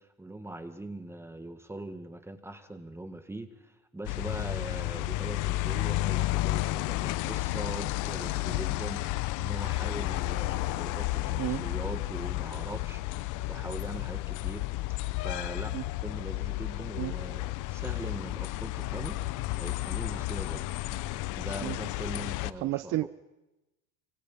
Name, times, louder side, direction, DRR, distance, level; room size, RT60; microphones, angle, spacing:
voice 1, 0.0-14.6 14.9-15.8 16.0-19.2 19.6-20.8 21.4-23.1, right 2 dB, 5° right, 9 dB, 1.8 m, -42 dB
sound 1, 4.0-22.5, left 18 dB, 45° left, 1.0 m, -32 dB
voice 2, 22.6-23.1, right 17 dB, 40° right, 14 dB, 0.7 m, -31 dB
29.5 x 25.5 x 5.6 m, 0.98 s
supercardioid pair, 135°, 42 cm